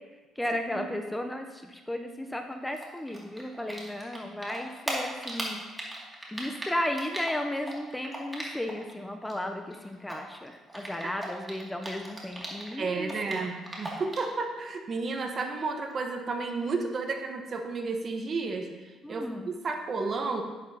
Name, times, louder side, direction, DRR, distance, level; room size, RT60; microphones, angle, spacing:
voice 1, 0.4-5.6 6.3-13.5 19.0-19.5, left 1 dB, 10° left, 5 dB, 0.6 m, -34 dB
Typing, 2.7-4.2 4.4-8.9 9.2-12.7 13.0-14.3, right 1 dB, 10° right, 2.4 m, -37 dB
voice 2, 12.7-18.7 19.1-20.4, right 4 dB, 40° right, 4 dB, 1.2 m, -32 dB
10.5 x 10.0 x 2.8 m, 1.3 s
cardioid pair, 110°, 0 cm